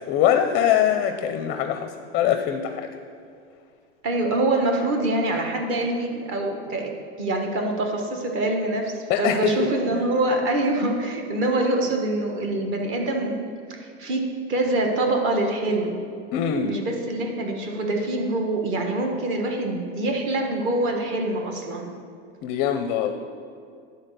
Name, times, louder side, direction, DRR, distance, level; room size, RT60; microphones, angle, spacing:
voice 1, 0.1-3.0 9.1-10.0 16.3-16.8 22.4-23.1, left 9 dB, 30° left, 7 dB, 0.5 m, -23 dB
voice 2, 4.0-6.9 7.2-13.4 13.7-16.0 16.6-21.9, right 2 dB, 40° right, 2 dB, 1.3 m, -25 dB
11.0 x 4.1 x 6.5 m, 2.3 s
supercardioid pair, 145°, 33 cm